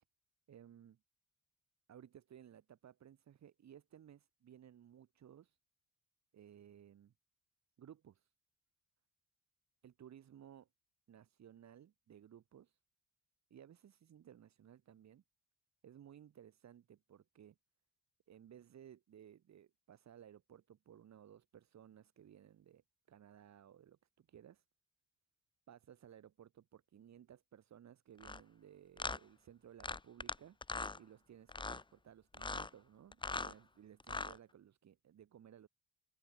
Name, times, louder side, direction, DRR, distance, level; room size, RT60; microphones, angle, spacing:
voice 1, 0.5-1.0 1.9-5.6 6.3-7.1 7.8-8.3 9.8-10.7 11.1-12.8 13.5-15.2 15.8-17.6 18.3-22.8 23.1-24.6 25.7-30.6 31.0-35.7, right 10 dB, 65° right, 6.5 m, -59 dB
sound 1, 28.2-28.4 29.0-29.2 29.8-30.3 30.6-31.0 31.5-31.8 32.3-32.7 33.1-33.5 34.0-34.4, left 3 dB, 15° left, 1.0 m, -40 dB
open air
cardioid pair, 90°, 30 cm